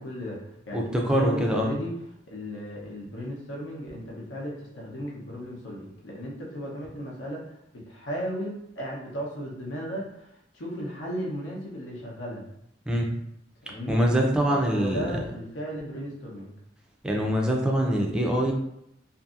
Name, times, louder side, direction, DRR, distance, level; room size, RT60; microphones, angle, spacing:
voice 1, 0.0-1.9 2.3-10.3 10.5-12.5 13.6-14.0 14.5-16.5, equal, 80° left, -3 dB, 0.8 m, -35 dB
voice 2, 0.7-1.7 12.9-13.2 13.9-15.1 17.0-18.5, equal, 5° right, -1 dB, 0.4 m, -24 dB
2.7 x 2.5 x 2.4 m, 0.78 s
head